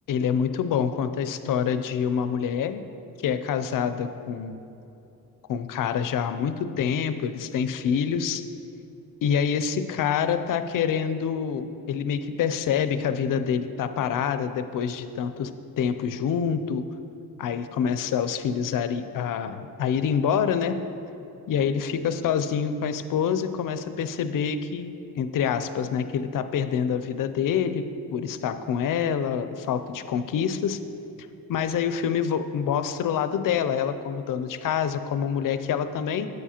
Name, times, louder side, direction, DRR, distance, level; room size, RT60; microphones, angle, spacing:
voice 1, 0.1-2.8 3.2-4.6 5.5-8.4 9.2-15.5 15.8-16.8 17.4-20.8 21.5-27.8 28.1-30.8 31.5-36.3, left 7 dB, 60° left, 11 dB, 0.4 m, -26 dB
7.9 x 7.1 x 2.8 m, 2.8 s
cardioid pair, 105°, 37 cm